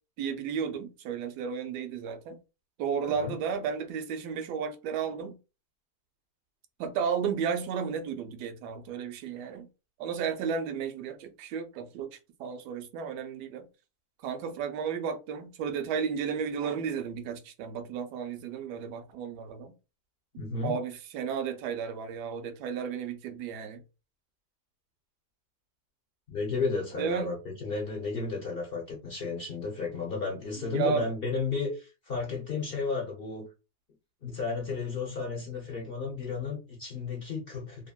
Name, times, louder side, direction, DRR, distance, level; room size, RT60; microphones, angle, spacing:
voice 1, 0.2-2.4 2.8-5.4 6.8-9.7 10.0-12.1 12.4-13.7 14.2-19.7 20.6-23.8 27.0-27.3 30.7-31.1, right 6 dB, 90° right, 1.2 m, -33 dB
voice 2, 3.0-3.4 20.4-20.7 26.3-33.5 34.2-37.9, left 4 dB, 55° left, 0.7 m, -33 dB
2.8 x 2.6 x 2.2 m
omnidirectional pair, 1.7 m